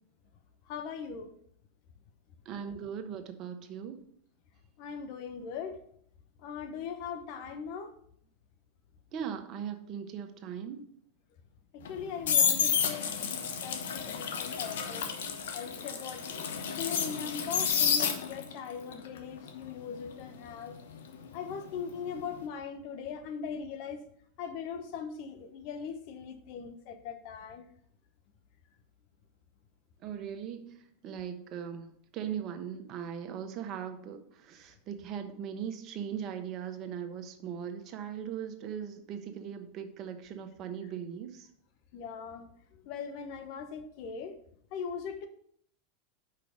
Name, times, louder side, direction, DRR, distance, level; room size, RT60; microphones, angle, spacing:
voice 1, 0.6-1.3 4.8-5.8 6.4-7.9 11.7-16.2 16.7-20.8 21.3-24.1 24.4-27.6 41.9-44.4 44.7-45.3, left 6 dB, 55° left, 8 dB, 1.0 m, -40 dB
voice 2, 2.4-4.0 9.1-10.8 30.0-30.8 31.0-41.5, right 8 dB, 45° right, 7 dB, 1.1 m, -39 dB
sound 1, 11.8-18.6 18.9-21.8 22.1-22.4, left 7 dB, 80° left, 1.0 m, -30 dB
5.6 x 5.2 x 6.4 m, 0.67 s
hypercardioid pair, 105°, 0 cm